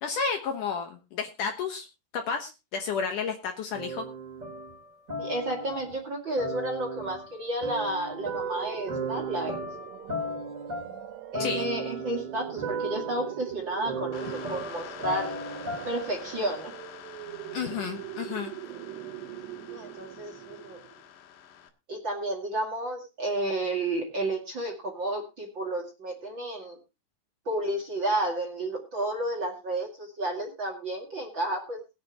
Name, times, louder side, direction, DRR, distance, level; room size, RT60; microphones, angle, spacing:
voice 1, 0.0-1.9 2.1-4.1 11.4-11.7 17.5-18.5, left 5 dB, 65° left, 4 dB, 2.3 m, -31 dB
sound 1, 3.7-6.0 6.4-16.1, right 2 dB, 20° right, 4.0 m, -36 dB
voice 2, 5.2-9.6 11.3-15.4 15.9-16.7 19.6-20.8 21.9-26.8 27.5-31.8, right 1 dB, 35° right, 2 dB, 2.4 m, -31 dB
sound 2, 8.3-21.1, right 14 dB, 85° right, 3.3 m, -42 dB
sound 3, 14.1-21.7, left 9 dB, 80° left, 3.7 m, -46 dB
21.0 x 8.6 x 2.9 m, 0.27 s
omnidirectional pair, 4.7 m